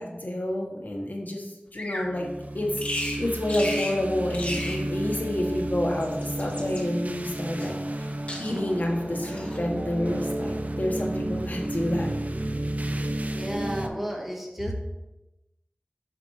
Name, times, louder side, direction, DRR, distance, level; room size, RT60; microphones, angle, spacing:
voice 1, 0.0-2.3 2.5-8.1 8.4-12.1, left 1 dB, 60° left, 0 dB, 1.4 m, -29 dB
Bird vocalization bird call bird song, 1.7-2.1 2.8-3.2 3.5-4.0 4.3-4.8 5.8-6.8 7.6-8.0 8.3-8.8 9.2-9.6, left 1 dB, 40° left, 1.5 m, -34 dB
sound 1, 2.0-13.9, right 1 dB, 45° right, 0.5 m, -32 dB
voice 2, 13.3-14.7, equal, 5° right, -1 dB, 1.6 m, -32 dB
7.5 x 6.0 x 3.2 m, 0.97 s
wide cardioid pair, 45°, 3 cm